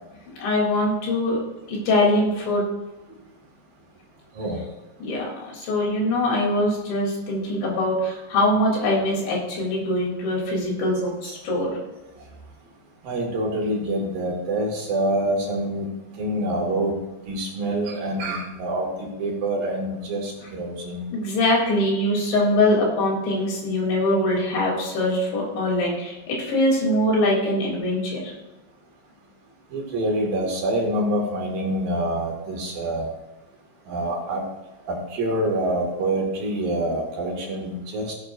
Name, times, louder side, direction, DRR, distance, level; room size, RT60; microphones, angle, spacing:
voice 1, 0.4-1.4 1.7-2.7 5.0-11.8 21.1-28.3, left 1 dB, 80° left, -2 dB, 5.5 m, -23 dB
voice 2, 13.0-15.9 16.2-17.0 17.3-21.0 29.7-33.1 33.9-34.4 34.9-38.1, right 1 dB, 55° right, -1 dB, 3.6 m, -26 dB
18.0 x 8.3 x 2.6 m, 1.1 s
omnidirectional pair, 5.1 m